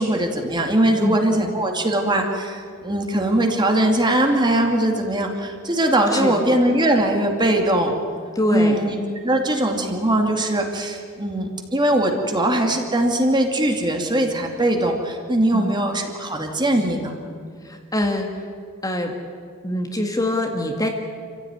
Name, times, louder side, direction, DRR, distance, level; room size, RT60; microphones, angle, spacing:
voice 1, 0.0-7.9 8.5-17.2, right 1 dB, 20° right, 3 dB, 2.5 m, -21 dB
voice 2, 8.4-8.8 15.5-15.8 17.6-18.3 18.8-19.1 19.6-20.9, left 1 dB, 15° left, 3 dB, 1.9 m, -24 dB
27.0 x 15.5 x 9.7 m, 2.3 s
head